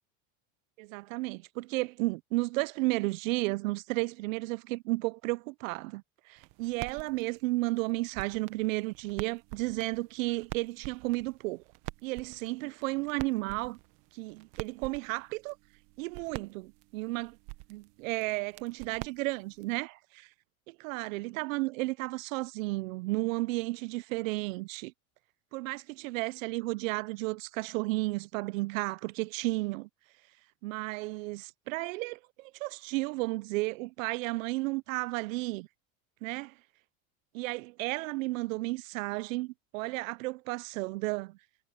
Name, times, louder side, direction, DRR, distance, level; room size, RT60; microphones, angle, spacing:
voice 1, 0.8-11.6 12.0-13.8 14.1-15.6 16.0-17.4 17.7-20.3 20.7-24.9 25.5-29.9 30.6-35.7 36.2-36.5 37.3-41.4, right 22 dB, 80° right, 0.5 m, -33 dB
sound 1, 6.4-19.8, right 21 dB, 50° right, 1.2 m, -47 dB
supercardioid pair, 155°, 39 cm